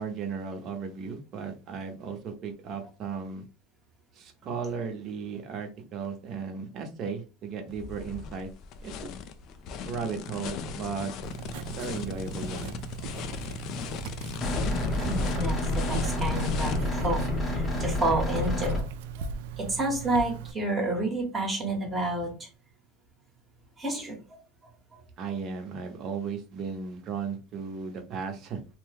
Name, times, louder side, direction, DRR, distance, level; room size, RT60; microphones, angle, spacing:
voice 1, 0.0-3.4 4.1-8.5 8.8-9.1 9.9-11.1 11.6-12.7 25.2-28.6, right 5 dB, 40° right, 4 dB, 0.9 m, -35 dB
sound 1, 7.7-16.8, left 7 dB, 50° left, 0.4 m, -37 dB
Writing, 11.2-20.5, right 7 dB, 80° right, 0.4 m, -39 dB
sound 2, 14.4-18.8, left 1 dB, 20° left, 0.8 m, -29 dB
voice 2, 15.0-18.9 19.2-19.3 19.6-22.3 23.8-24.4, right 2 dB, 20° right, -1 dB, 1.1 m, -30 dB
2.8 x 2.1 x 3.3 m, 0.33 s
supercardioid pair, 140°, 0 cm